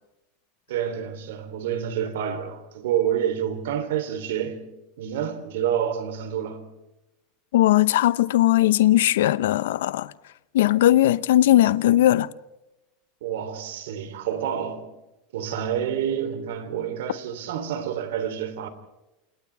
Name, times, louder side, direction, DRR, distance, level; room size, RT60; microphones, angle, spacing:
voice 1, 0.7-6.7 13.2-15.0 15.3-18.7, right 9 dB, 85° right, 3.3 m, -28 dB
voice 2, 7.5-10.1 10.5-12.3, left 14 dB, 90° left, 0.8 m, -19 dB
29.0 x 28.0 x 3.5 m
supercardioid pair, 145°, 0 cm